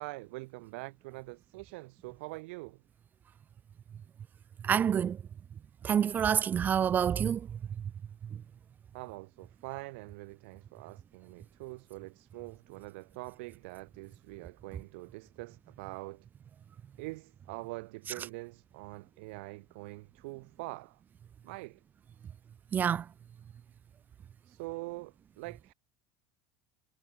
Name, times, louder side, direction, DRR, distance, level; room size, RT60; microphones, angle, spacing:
voice 1, 0.0-2.8 8.9-16.3 17.0-21.0 21.4-21.8 24.4-25.7, right 24 dB, 85° right, 3.7 m, -44 dB
voice 2, 4.7-5.2 5.8-7.4 22.7-23.0, right 8 dB, 30° right, 0.6 m, -27 dB
cardioid pair, 135°, 6 cm